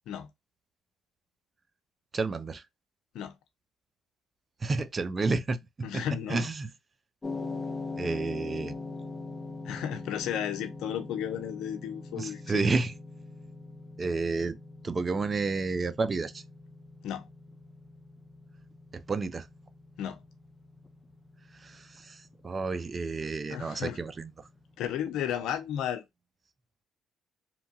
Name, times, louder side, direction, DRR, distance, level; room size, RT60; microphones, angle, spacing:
voice 1, 2.1-2.6 4.6-5.6 5.9-6.0 6.3-6.7 7.9-8.8 12.2-12.9 14.0-14.6 14.8-16.4 18.9-19.5 21.6-24.3, right 3 dB, 35° right, 0.4 m, -30 dB
voice 2, 5.8-6.5 9.6-12.6 17.0-17.3 20.0-20.2 23.5-24.0 24.8-26.0, left 9 dB, 80° left, 0.5 m, -33 dB
sound 1, 7.2-25.5, left 3 dB, 20° left, 0.6 m, -43 dB
2.8 x 2.2 x 2.7 m
cardioid pair, 85°, 0 cm